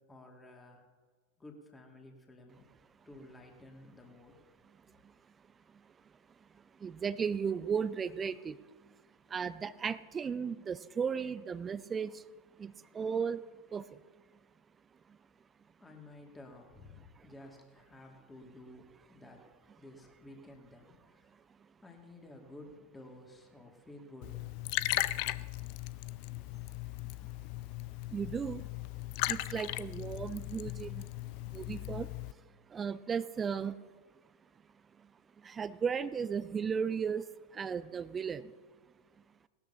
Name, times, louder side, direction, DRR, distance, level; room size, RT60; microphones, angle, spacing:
voice 1, 0.1-0.8 1.4-2.6 3.1-4.4 15.8-19.4 19.8-21.3 21.8-24.5, left 1 dB, 10° left, 1 dB, 2.2 m, -53 dB
voice 2, 6.8-8.6 9.3-12.1 12.6-13.4 13.7-13.8 28.1-28.6 29.3-31.0 31.5-32.1 32.7-33.8 35.4-37.2 37.5-38.5, right 6 dB, 20° right, 17 dB, 0.4 m, -35 dB
Liquid, 24.2-32.3, left 18 dB, 45° left, 0.4 m, -37 dB
19.0 x 12.5 x 2.8 m, 1.4 s
figure-of-eight pair, 90°, 0 cm